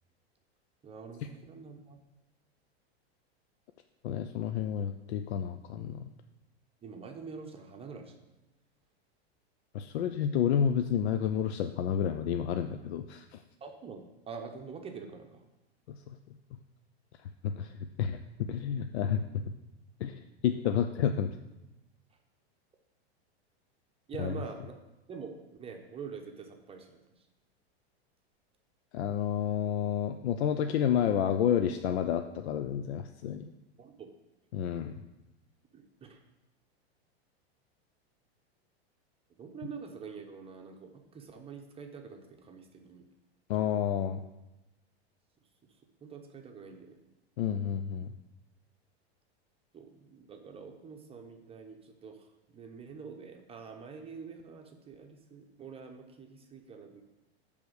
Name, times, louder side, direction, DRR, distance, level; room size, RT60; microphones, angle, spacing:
voice 1, 0.8-2.0 6.8-8.2 13.6-15.4 24.1-24.8 25.1-27.0 33.8-34.1 35.7-36.2 39.4-43.0 43.6-43.7 46.0-47.0 49.7-52.2 52.5-57.0, right 5 dB, 20° right, 3 dB, 0.7 m, -45 dB
voice 2, 4.0-6.1 9.7-13.4 15.9-16.2 17.6-19.4 20.0-21.4 24.2-24.4 28.9-33.5 34.5-35.0 43.5-44.2 47.4-48.1, left 8 dB, 85° left, 8 dB, 0.5 m, -30 dB
10.0 x 3.5 x 6.4 m, 0.99 s
supercardioid pair, 130°, 32 cm